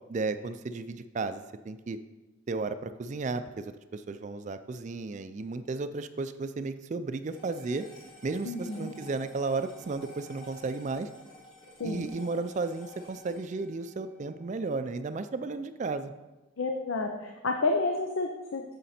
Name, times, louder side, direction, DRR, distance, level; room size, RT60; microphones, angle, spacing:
voice 1, 0.1-2.0 2.5-7.9 8.2-11.1 11.8-16.1, right 3 dB, 35° right, 11 dB, 0.4 m, -34 dB
sound 1, 7.3-15.8, left 1 dB, 25° left, 2.0 m, -52 dB
voice 2, 8.4-8.9 11.8-12.1 16.6-18.6, left 3 dB, 85° left, 3 dB, 0.7 m, -30 dB
9.1 x 6.6 x 4.3 m, 1.1 s
head